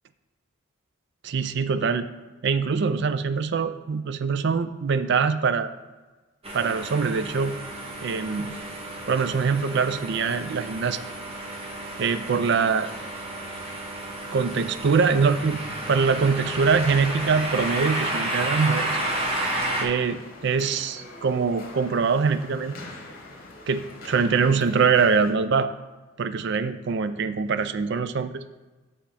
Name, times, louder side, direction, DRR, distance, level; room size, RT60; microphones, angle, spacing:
voice 1, 1.2-2.1 2.4-5.7 6.5-7.6 8.0-8.6 9.1-11.0 12.0-12.9 14.3-18.9 19.8-22.8 23.7-25.7 26.2-28.4, right 5 dB, 55° right, 12 dB, 0.4 m, -23 dB
sound 1, 6.4-19.8, right 1 dB, 30° right, 1.1 m, -32 dB
sound 2, 15.8-25.3, left 2 dB, 45° left, 1.4 m, -43 dB
8.2 x 3.7 x 5.6 m, 1.2 s
head